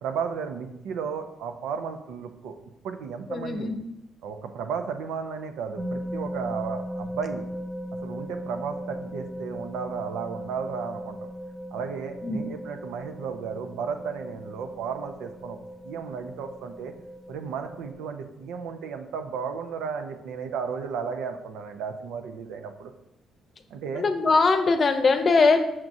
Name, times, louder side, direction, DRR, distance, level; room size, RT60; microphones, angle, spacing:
voice 1, 0.0-2.6 2.8-3.7 4.2-7.5 8.0-11.3 11.7-16.9 17.3-22.9 23.7-24.0, right 6 dB, 90° right, 6 dB, 0.6 m, -34 dB
voice 2, 3.3-3.7 12.2-12.4 24.0-25.7, left 4 dB, 45° left, 7 dB, 0.7 m, -21 dB
sound 1, 5.8-17.9, equal, 25° right, 0.8 m, -37 dB
6.0 x 5.9 x 2.6 m, 0.88 s
cardioid pair, 90°, 0 cm